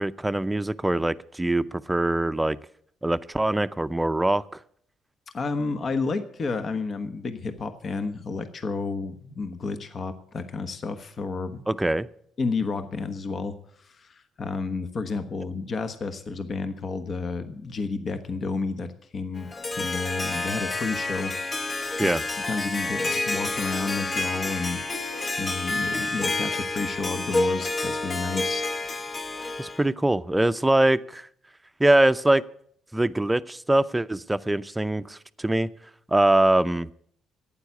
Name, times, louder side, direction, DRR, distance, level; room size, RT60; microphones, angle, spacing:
voice 1, 0.0-2.6 3.0-4.4 11.7-12.1 22.0-22.2 29.6-31.3 31.8-32.4 32.9-35.7 36.1-36.9, right 1 dB, 15° right, 14 dB, 0.6 m, -23 dB
voice 2, 5.3-11.6 12.4-18.9 19.1-21.3 21.6-22.1 22.5-28.6, left 4 dB, 50° left, 9 dB, 1.2 m, -31 dB
Harp, 19.4-29.9, left 2 dB, 35° left, 0.9 m, -29 dB
11.5 x 8.9 x 8.3 m, 0.65 s
supercardioid pair, 60°, 0 cm